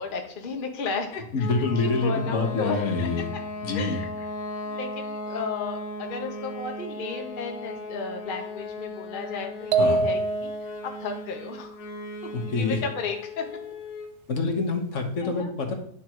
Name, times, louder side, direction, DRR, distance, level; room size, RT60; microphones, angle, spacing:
voice 1, 0.0-1.5 1.8-3.1 3.7-4.1 4.6-10.5 10.8-11.8 12.4-13.4 15.2-15.5, left 4 dB, 45° left, 3 dB, 1.0 m, -34 dB
voice 2, 1.3-3.3 3.6-4.0 9.8-10.1 12.3-12.8 14.3-15.7, left 3 dB, 65° left, 4 dB, 1.4 m, -26 dB
sound 1, 1.4-14.2, left 1 dB, 90° left, 1.3 m, -37 dB
sound 2, 9.7-10.9, right 3 dB, 65° right, 0.8 m, -24 dB
9.9 x 3.7 x 4.5 m, 0.64 s
omnidirectional pair, 1.4 m